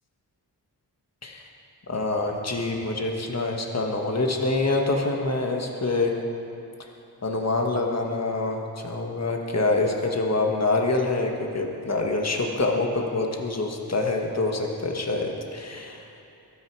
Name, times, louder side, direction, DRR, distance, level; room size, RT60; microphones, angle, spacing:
voice 1, 1.9-6.1 7.2-16.0, left 2 dB, 40° left, 1 dB, 1.5 m, -26 dB
22.0 x 9.4 x 4.7 m, 2.7 s
wide cardioid pair, 90°, 40 cm